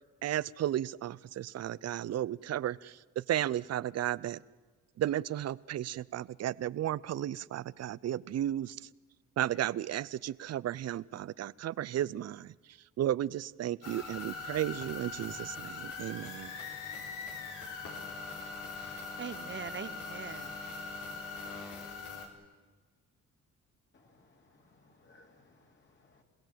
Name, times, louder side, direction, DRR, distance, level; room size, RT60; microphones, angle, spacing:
voice 1, 0.2-4.4 5.0-8.8 9.4-16.6, right 12 dB, 55° right, 0.6 m, -34 dB
sound 1, 13.8-22.3, left 4 dB, 90° left, 3.9 m, -42 dB
voice 2, 18.4-20.8, right 7 dB, 40° right, 1.0 m, -44 dB
voice 3, 23.9-26.2, left 2 dB, 35° left, 3.5 m, -63 dB
27.5 x 16.5 x 7.6 m
cardioid pair, 90°, 30 cm